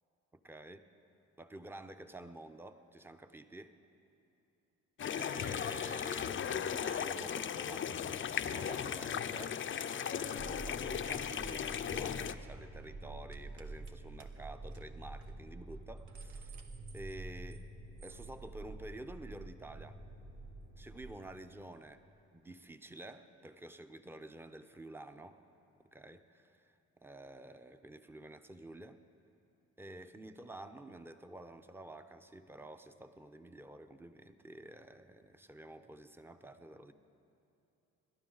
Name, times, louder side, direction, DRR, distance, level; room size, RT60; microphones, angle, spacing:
voice 1, 0.4-0.9 1.4-3.8 5.1-16.6 16.9-17.7 18.0-20.0 20.8-22.0 22.3-25.4 25.9-29.0 29.8-36.9, right 1 dB, 5° right, 9 dB, 0.7 m, -50 dB
sound 1, 5.0-12.4, left 8 dB, 40° left, 0.6 m, -37 dB
sound 2, 10.4-21.2, right 2 dB, 55° right, 2.8 m, -48 dB
sound 3, 12.5-12.7 13.3-13.9 14.2-14.3 14.7-14.8 15.2-15.3 15.8-17.7 18.0-18.3, right 5 dB, 70° right, 1.3 m, -59 dB
28.0 x 12.0 x 4.0 m, 2.9 s
cardioid pair, 90°, 30 cm